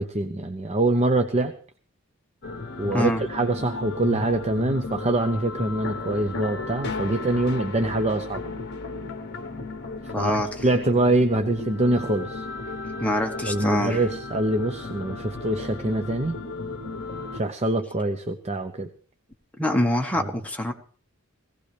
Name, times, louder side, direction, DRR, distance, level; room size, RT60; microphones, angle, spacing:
voice 1, 0.0-1.5 2.8-8.4 10.0-10.3 10.6-12.5 13.5-16.4 17.3-18.9 20.2-20.3, right 2 dB, 30° right, 7 dB, 0.8 m, -24 dB
sound 1, 2.4-17.4, left 3 dB, 50° left, 1.0 m, -34 dB
voice 2, 10.1-10.5 13.0-14.0 19.6-20.7, left 1 dB, 5° left, 3 dB, 1.3 m, -24 dB
18.0 x 16.5 x 3.3 m, 0.43 s
head